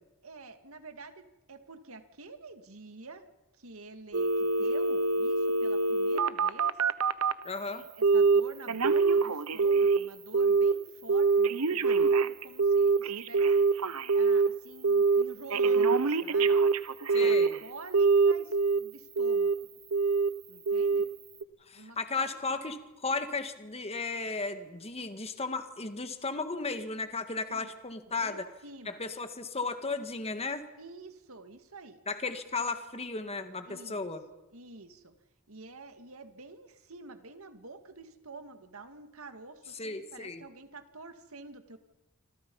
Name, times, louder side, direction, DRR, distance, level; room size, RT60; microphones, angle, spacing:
voice 1, 0.2-3.2 3.6-6.8 7.6-13.6 14.1-16.6 17.2-19.5 20.5-21.1 21.7-22.4 27.5-27.7 28.2-29.0 30.8-32.0 33.7-34.1 34.5-35.1 35.5-41.8, right 3 dB, 70° right, 8 dB, 2.2 m, -48 dB
Telephone, 4.1-7.4 8.0-8.4 8.7-10.0 10.3-10.7 11.1-14.5 14.8-15.2 15.5-17.6 17.9-18.8 19.2-19.5 19.9-20.3 20.7-21.0 21.4-21.5, right 4 dB, 90° right, 1.0 m, -24 dB
voice 2, 7.4-7.9 17.1-17.6 21.7-28.5 28.9-30.6 32.1-34.2 39.8-40.4, left 3 dB, 30° left, 8 dB, 1.8 m, -35 dB
28.0 x 26.0 x 5.6 m, 1.0 s
head